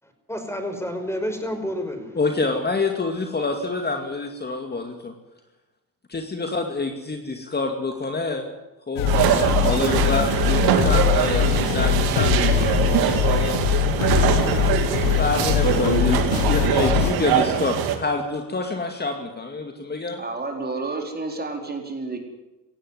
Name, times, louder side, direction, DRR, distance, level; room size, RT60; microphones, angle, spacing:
voice 1, 0.0-2.2, equal, 5° left, 6 dB, 5.4 m, -30 dB
voice 2, 2.2-5.1 6.1-8.5 8.9-11.5 11.7-12.8 13.2-13.6 15.0-20.2, left 3 dB, 25° left, 5 dB, 2.4 m, -27 dB
sound 1, 9.0-17.1, left 13 dB, 90° left, 1.7 m, -22 dB
sound 2, 9.1-18.0, right 8 dB, 80° right, 2.6 m, -22 dB
voice 3, 20.2-22.2, right 3 dB, 25° right, 3 dB, 4.4 m, -30 dB
18.0 x 15.5 x 9.6 m, 1.0 s
supercardioid pair, 80°, 37 cm